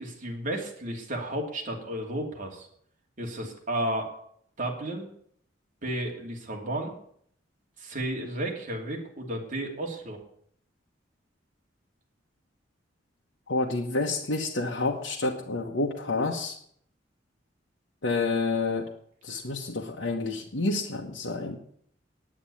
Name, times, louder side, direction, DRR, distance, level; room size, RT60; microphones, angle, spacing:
voice 1, 0.0-2.7 3.2-4.1 4.6-5.1 5.8-6.9 7.8-10.2, right 1 dB, 45° right, 0 dB, 2.9 m, -33 dB
voice 2, 13.5-16.6 18.0-18.9 19.2-21.6, left 3 dB, 80° left, -1 dB, 1.3 m, -29 dB
9.9 x 8.8 x 8.5 m, 0.65 s
head